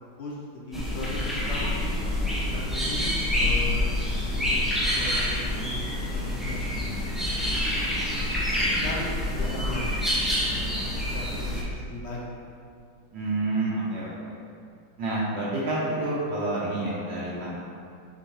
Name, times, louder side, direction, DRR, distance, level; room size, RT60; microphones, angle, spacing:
voice 1, 0.0-2.0 2.5-3.8 4.5-4.6 4.9-5.8 6.1-7.9 8.6-9.1 9.4-10.0 10.4-10.8 11.1-12.5, left 2 dB, 80° left, -3 dB, 0.6 m, -38 dB
sound 1, 0.7-11.6, left 1 dB, ahead, 0.4 m, -27 dB
voice 2, 13.1-14.3 15.0-17.5, right 2 dB, 70° right, -8 dB, 1.6 m, -28 dB
6.7 x 4.9 x 3.1 m, 2.3 s
omnidirectional pair, 2.1 m